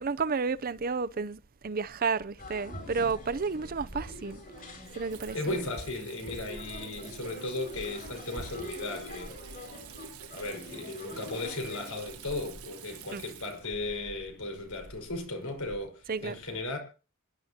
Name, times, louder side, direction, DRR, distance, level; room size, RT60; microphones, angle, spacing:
voice 1, 0.0-4.7 4.9-5.6 13.1-13.2 16.1-16.4, right 5 dB, 40° right, 0.6 m, -32 dB
sound 1, 2.4-11.9, left 1 dB, 40° left, 5.8 m, -44 dB
Water tap faucet / Sink (filling or washing), 3.2-15.8, right 5 dB, 80° right, 1.4 m, -48 dB
voice 2, 5.3-9.4 10.3-16.8, left 2 dB, 80° left, 5.0 m, -36 dB
26.5 x 11.5 x 2.9 m
head